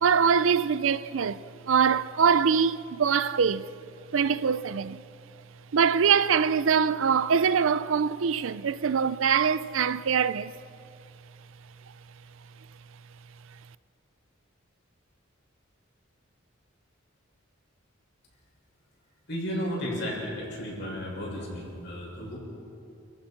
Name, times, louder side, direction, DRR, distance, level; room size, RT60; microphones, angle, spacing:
voice 1, 0.0-3.7 4.1-5.0 5.7-10.5, right 6 dB, 65° right, 0.5 m, -23 dB
voice 2, 19.3-22.4, equal, 55° left, 6.5 m, -33 dB
29.5 x 15.0 x 5.9 m
head